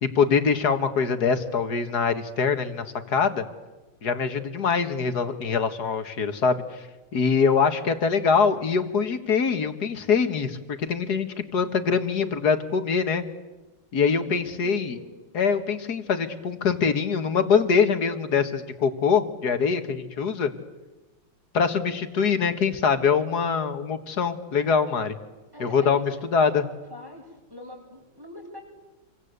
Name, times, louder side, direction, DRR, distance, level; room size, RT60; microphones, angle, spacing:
voice 1, 0.0-3.4 4.0-6.8 7.1-13.2 13.9-15.0 15.3-20.5 21.5-25.2 25.6-26.6, left 6 dB, 55° left, 9 dB, 2.1 m, -23 dB
voice 2, 14.1-15.2 25.5-26.4 26.9-28.6, left 1 dB, 10° right, 0 dB, 7.4 m, -43 dB
28.0 x 24.5 x 8.2 m, 1.2 s
omnidirectional pair, 2.1 m